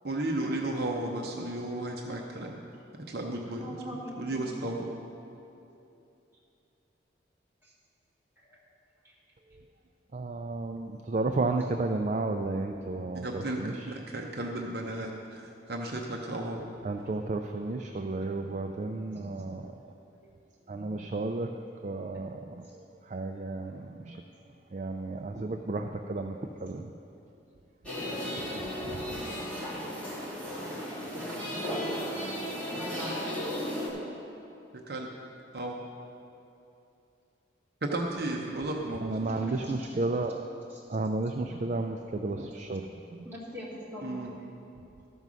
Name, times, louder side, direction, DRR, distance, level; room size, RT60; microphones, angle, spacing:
voice 1, 0.0-2.6 3.1-3.7 4.2-4.9 13.1-16.6 34.9-35.1 35.5-35.8 37.8-39.1 44.0-44.3, right 1 dB, 55° right, 0 dB, 0.7 m, -34 dB
voice 2, 3.6-4.7 7.6-7.7 8.4-8.6 9.0-9.1 31.2-31.3 39.2-39.7 43.2-44.2, equal, 10° right, -8 dB, 2.0 m, -41 dB
voice 3, 10.1-13.9 16.8-19.9 20.2-20.4 20.7-21.6 21.8-24.2 24.7-26.9 27.9-29.8 39.0-40.4 40.9-43.3, right 2 dB, 40° right, 4 dB, 0.3 m, -33 dB
sound 1, 27.9-33.9, equal, 5° left, 2.2 m, -34 dB
13.5 x 5.4 x 6.2 m, 2.8 s
head